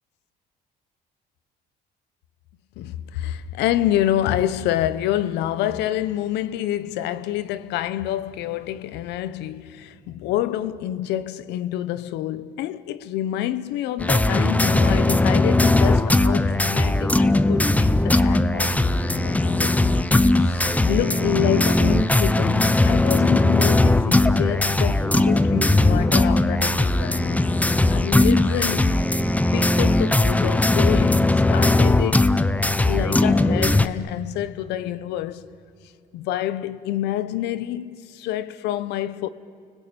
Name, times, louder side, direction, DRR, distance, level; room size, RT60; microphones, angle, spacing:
voice 1, 2.8-19.7 20.4-27.4 27.9-29.0 29.5-32.3 32.8-35.5 36.1-39.3, left 12 dB, 85° left, 1.0 m, -27 dB
sound 1, 14.0-33.9, left 2 dB, 10° left, 0.8 m, -19 dB
29.5 x 20.5 x 8.9 m
cardioid pair, 110°, 17 cm